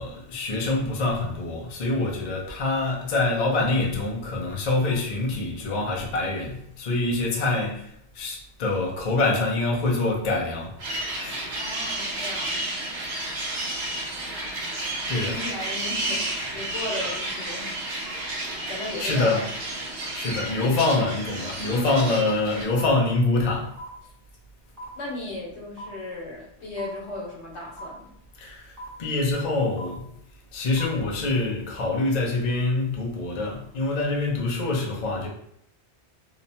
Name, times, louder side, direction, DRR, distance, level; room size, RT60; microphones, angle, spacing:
voice 1, 0.0-10.7 11.2-11.4 14.8-15.4 19.0-19.4 20.1-23.7 28.4-28.7 29.0-30.1 30.5-35.3, left 2 dB, 50° left, -2 dB, 0.6 m, -25 dB
sound 1, 10.8-22.6, right 1 dB, 75° right, 1.0 m, -31 dB
voice 2, 11.6-12.9 15.1-17.8 18.7-19.5 21.6-22.1 25.0-28.1, left 2 dB, 85° left, -2 dB, 1.1 m, -36 dB
sound 2, 22.8-22.9 23.8-23.9 24.8-24.9 25.8-25.9 26.8-26.9 27.8-27.9 28.8-28.9 29.8-29.9 30.8-30.9 31.8-31.9, right 1 dB, 20° right, 0.6 m, -38 dB
2.8 x 2.0 x 2.7 m, 0.72 s
omnidirectional pair, 1.1 m